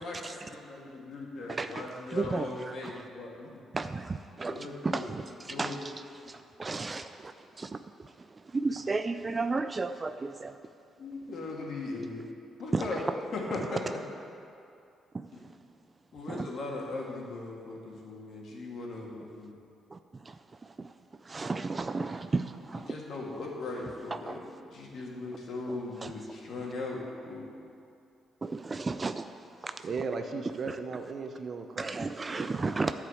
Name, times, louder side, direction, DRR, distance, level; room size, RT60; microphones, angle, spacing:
voice 1, 0.0-3.6 4.5-5.1 5.5-5.8 11.0-12.2 12.6-13.0 13.3-14.0 16.1-19.5 22.9-24.4 24.7-27.5, left 2 dB, 55° left, -2 dB, 2.1 m, -38 dB
voice 2, 1.5-3.1 3.7-10.6 12.7-13.0 13.5-13.7 15.1-15.6 16.3-16.5 19.9-20.9 21.2-23.0 24.1-24.4 25.7-26.1 28.4-29.9 30.4-30.8 31.8-32.9, right 3 dB, 25° right, 9 dB, 0.3 m, -34 dB
voice 3, 29.8-32.7, right 4 dB, 45° right, 5 dB, 0.8 m, -37 dB
11.0 x 4.9 x 7.8 m, 2.6 s
cardioid pair, 110°, 0 cm